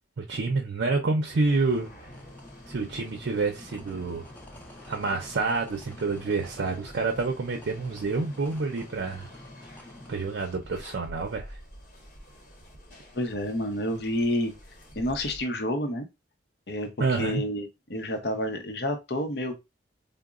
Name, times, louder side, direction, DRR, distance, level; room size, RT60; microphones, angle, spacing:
voice 1, 0.2-1.9 2.7-4.2 4.9-9.3 10.1-11.6 17.0-17.4, right 3 dB, 80° right, 0.5 m, -28 dB
sound 1, 1.3-15.5, equal, 45° left, 0.9 m, -50 dB
sound 2, 2.1-10.3, left 1 dB, 10° left, 0.4 m, -48 dB
voice 2, 13.1-14.5 15.0-16.1 16.7-19.6, left 1 dB, 65° left, 0.6 m, -29 dB
3.8 x 2.0 x 2.3 m
head